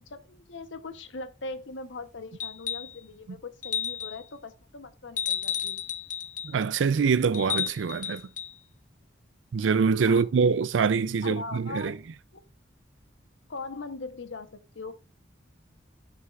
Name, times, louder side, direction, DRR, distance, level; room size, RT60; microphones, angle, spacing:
voice 1, 0.1-5.8 10.0-10.3 11.2-12.0 12.3-12.5 13.5-14.9, left 3 dB, 85° left, 0.9 m, -40 dB
sound 1, 2.4-3.0 3.6-4.2 5.2-6.6 7.3-8.5 10.2-10.3, left 9 dB, 40° left, 0.6 m, -32 dB
voice 2, 6.4-8.2 9.5-11.9, right 5 dB, 85° right, 0.4 m, -24 dB
12.5 x 6.0 x 2.4 m
head